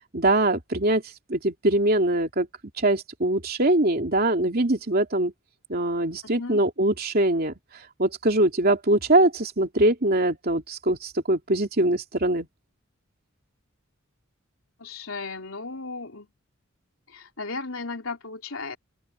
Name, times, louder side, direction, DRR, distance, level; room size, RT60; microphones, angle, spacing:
voice 1, 0.1-1.0 1.3-2.5 2.8-5.3 5.7-7.5 8.0-12.5, right 1 dB, 45° right, 3.1 m, -22 dB
voice 2, 6.2-6.6 14.8-16.3 17.1-18.8, left 3 dB, 80° left, 3.7 m, -35 dB
open air
head